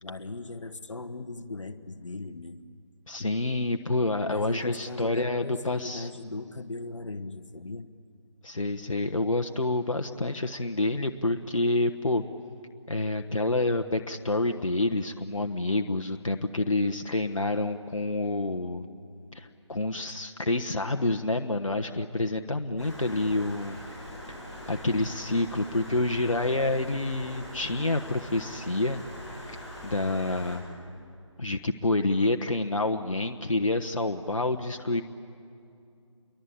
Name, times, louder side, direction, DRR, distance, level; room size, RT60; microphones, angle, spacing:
voice 1, 0.0-2.6 4.3-7.9, left 3 dB, 70° left, 10 dB, 1.6 m, -38 dB
voice 2, 3.1-6.1 8.4-12.2 12.9-18.9 19.3-23.8 24.7-29.0 29.5-29.6 29.8-30.6 31.4-35.0, left 2 dB, 85° left, 6 dB, 1.3 m, -28 dB
Stream, 22.8-30.6, equal, ahead, 6.5 m, -42 dB
29.0 x 23.0 x 8.7 m, 2.5 s
figure-of-eight pair, 160°, 16 cm